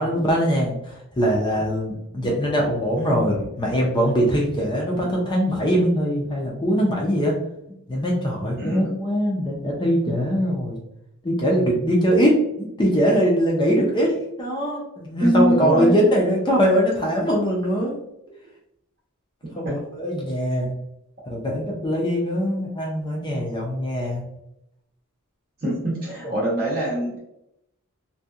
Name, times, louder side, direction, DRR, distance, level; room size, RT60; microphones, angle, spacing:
voice 1, 0.0-7.3 7.9-10.8 11.2-18.0 19.5-20.7 21.3-24.2, equal, 20° left, -2 dB, 0.4 m, -22 dB
voice 2, 8.6-8.9 15.2-15.9 19.4-19.8 25.6-27.2, right 1 dB, 45° right, -5 dB, 0.7 m, -23 dB
2.7 x 2.2 x 2.3 m, 0.81 s
head